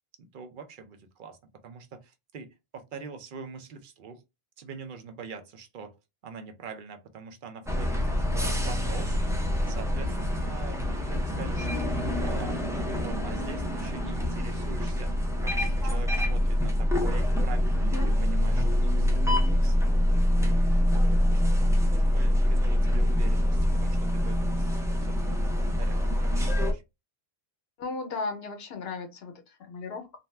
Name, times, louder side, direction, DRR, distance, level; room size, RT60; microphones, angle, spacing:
voice 1, 0.2-1.4 1.6-4.2 4.6-6.0 6.2-12.6 13.0-19.8 20.3-26.8, right 5 dB, 60° right, 0.7 m, -44 dB
sound 1, 7.6-26.7, left 1 dB, 5° right, 0.3 m, -25 dB
voice 2, 17.7-18.1 27.8-30.2, left 3 dB, 75° left, 0.9 m, -36 dB
2.6 x 2.2 x 3.1 m
omnidirectional pair, 1.1 m